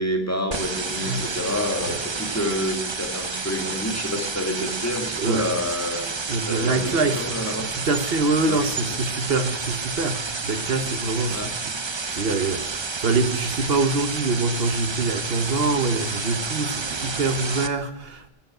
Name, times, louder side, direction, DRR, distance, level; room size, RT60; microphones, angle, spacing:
voice 1, 0.0-6.1 6.4-7.7 8.5-8.9 11.3-11.5, left 1 dB, 15° left, 1.9 m, -28 dB
sound 1, 0.5-17.7, right 4 dB, 30° right, 0.7 m, -30 dB
voice 2, 1.0-1.4 1.9-2.0 5.2-5.5 6.3-7.3 7.7-11.5 11.8-18.3, right 3 dB, 70° right, 1.2 m, -25 dB
13.0 x 7.8 x 9.1 m
omnidirectional pair, 1.1 m